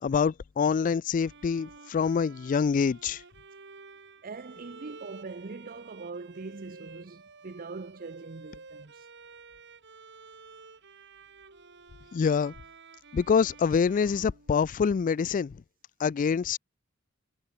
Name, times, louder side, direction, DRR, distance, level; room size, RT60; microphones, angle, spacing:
voice 1, 0.0-3.2 12.1-12.5 13.1-15.6 16.0-16.6, left 6 dB, 40° left, 0.3 m, -26 dB
Bowed string instrument, 1.2-15.1, right 4 dB, 60° right, 4.1 m, -51 dB
voice 2, 4.2-9.1, right 3 dB, 45° right, 0.7 m, -42 dB
head